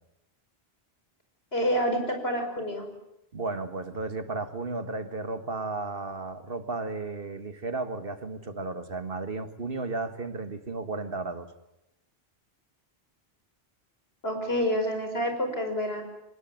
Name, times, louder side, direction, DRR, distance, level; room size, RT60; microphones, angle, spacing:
voice 1, 1.5-2.9 14.2-16.0, equal, 75° left, 5 dB, 5.8 m, -28 dB
voice 2, 3.3-11.5, right 3 dB, 65° right, 10 dB, 1.9 m, -34 dB
24.0 x 20.5 x 9.3 m, 0.87 s
omnidirectional pair, 1.0 m